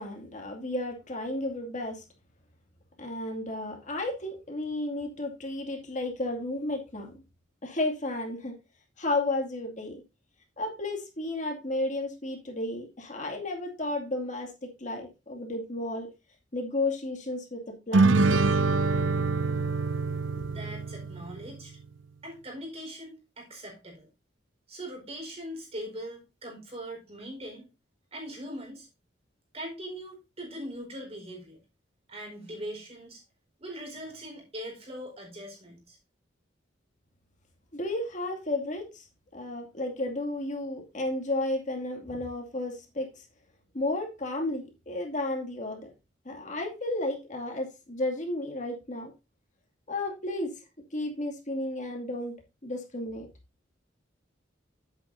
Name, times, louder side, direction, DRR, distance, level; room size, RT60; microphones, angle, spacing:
voice 1, 0.0-2.0 3.0-7.2 7.6-8.5 9.0-10.0 10.6-16.1 16.5-18.4 20.3-20.5 37.7-39.1 39.3-43.3 43.7-45.9 46.2-49.1 49.9-50.5 50.9-52.3 52.6-53.3, left 2 dB, 40° left, 1 dB, 2.3 m, -33 dB
sound 1, 17.9-21.5, right 3 dB, 90° right, 0.6 m, -25 dB
voice 2, 20.5-21.8 22.2-24.1 24.7-27.7 28.1-28.9 29.5-31.6 32.1-33.2 33.6-36.0, equal, 35° right, 1 dB, 4.4 m, -41 dB
10.5 x 8.5 x 2.7 m, 0.27 s
head